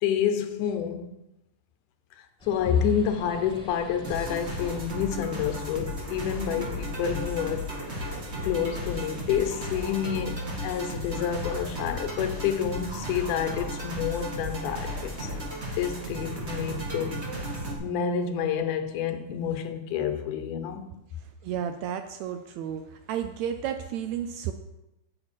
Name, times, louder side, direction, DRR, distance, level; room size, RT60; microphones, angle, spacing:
voice 1, 0.0-1.1 2.4-7.7 8.0-8.2 8.4-15.3 15.7-17.2 17.8-20.9, left 8 dB, 85° left, 2.3 m, -29 dB
sound 1, 2.4-15.5, left 3 dB, 5° left, 1.1 m, -43 dB
sound 2, 4.0-17.8, equal, 40° right, 1.0 m, -35 dB
voice 2, 21.4-22.8 23.1-24.5, right 9 dB, 80° right, 1.6 m, -32 dB
8.8 x 7.8 x 4.5 m
omnidirectional pair, 3.6 m